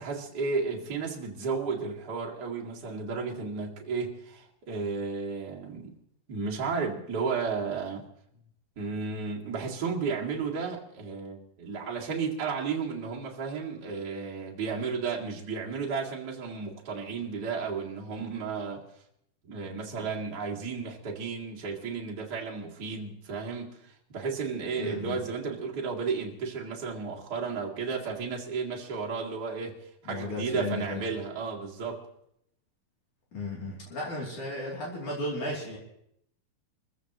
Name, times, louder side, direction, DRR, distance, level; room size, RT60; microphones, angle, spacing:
voice 1, 0.0-5.9 6.3-8.0 8.8-18.8 19.5-29.7 30.0-32.0, right 5 dB, 30° right, -3 dB, 2.3 m, -33 dB
voice 2, 24.8-25.2 30.0-31.1 33.3-35.8, left 1 dB, 55° left, -3 dB, 4.3 m, -34 dB
26.5 x 15.0 x 3.0 m, 0.74 s
omnidirectional pair, 4.2 m